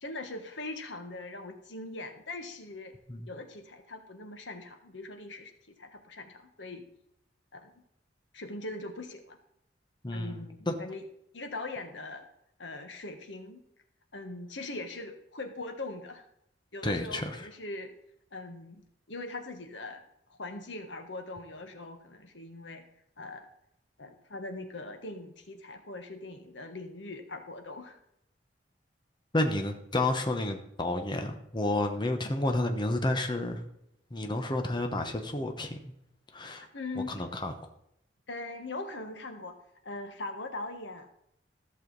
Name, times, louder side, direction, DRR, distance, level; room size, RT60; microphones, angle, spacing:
voice 1, 0.0-2.9 3.3-5.5 5.8-6.8 7.5-7.7 8.3-9.4 10.1-11.0 11.3-12.3 12.6-13.6 14.1-16.2 16.7-17.9 18.3-18.8 19.1-20.0 20.3-22.8 23.2-23.5 24.0-28.0 36.7-37.2 38.3-39.6 39.8-41.1, left 2 dB, 80° left, 6 dB, 1.4 m, -41 dB
voice 2, 10.0-10.7 16.8-17.5 29.3-33.6 34.1-35.9 36.3-36.6 37.1-37.5, left 1 dB, 25° left, 5 dB, 1.0 m, -30 dB
14.0 x 6.6 x 4.0 m, 0.77 s
head